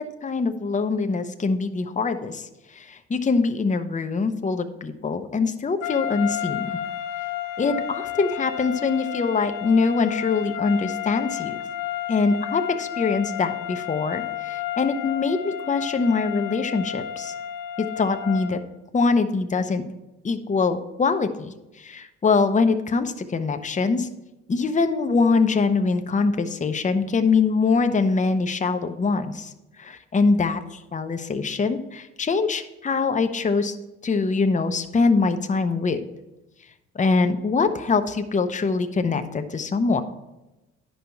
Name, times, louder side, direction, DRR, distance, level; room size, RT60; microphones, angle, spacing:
voice 1, 0.2-2.5 2.8-6.7 7.6-11.6 12.1-17.3 17.8-18.6 18.9-19.8 20.2-24.1 24.5-29.5 29.8-30.6 30.9-33.7 34.0-36.1 36.9-40.0, left 4 dB, 25° left, 8 dB, 0.8 m, -23 dB
sound 1, 5.8-18.7, left 11 dB, 80° left, 0.6 m, -32 dB
10.0 x 5.5 x 4.5 m, 1.0 s
supercardioid pair, 65°, 29 cm